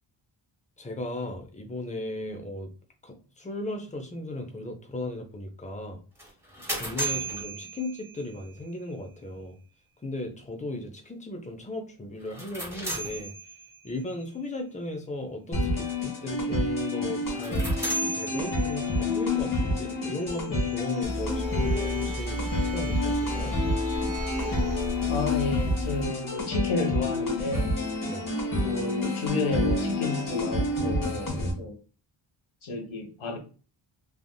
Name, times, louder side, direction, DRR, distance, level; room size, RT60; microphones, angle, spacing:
voice 1, 0.8-2.7 3.0-6.0 6.8-9.6 10.0-13.3 13.8-17.7 18.1-23.6 28.0-28.3, left 1 dB, 15° left, 0.6 m, -36 dB
sound 1, 6.2-8.4 12.2-13.9 17.2-19.0, right 2 dB, 5° right, 1.2 m, -35 dB
sound 2, 15.5-31.5, left 2 dB, 45° left, 1.2 m, -29 dB
sound 3, 21.0-26.1, equal, 35° right, 0.6 m, -33 dB
voice 2, 25.1-27.7 28.6-31.8 32.6-33.4, left 3 dB, 90° left, 1.0 m, -31 dB
3.5 x 2.4 x 2.2 m
wide cardioid pair, 95°, 47 cm